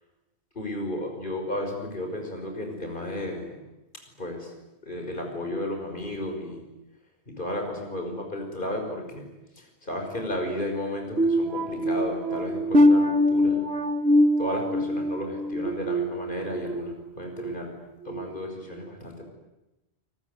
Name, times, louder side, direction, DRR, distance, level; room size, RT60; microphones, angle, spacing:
voice 1, 0.6-3.6 4.2-4.5 4.8-6.6 7.3-9.3 9.6-13.7 14.4-17.7 18.0-19.2, left 1 dB, 50° left, 3 dB, 5.6 m, -33 dB
sound 1, 11.2-16.8 17.3-17.5 18.1-18.2, left 1 dB, 75° right, 1.8 m, -23 dB
28.5 x 21.5 x 9.6 m, 0.99 s
omnidirectional pair, 1.1 m